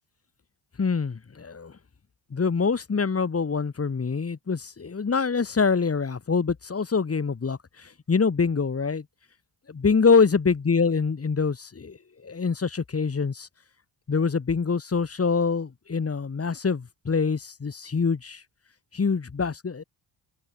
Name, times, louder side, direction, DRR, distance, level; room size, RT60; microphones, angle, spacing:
voice 1, 0.8-1.7 2.3-9.0 9.7-13.5 14.1-18.4 18.9-19.8, left 5 dB, 30° left, 3.0 m, -25 dB
cardioid pair, 95°, 46 cm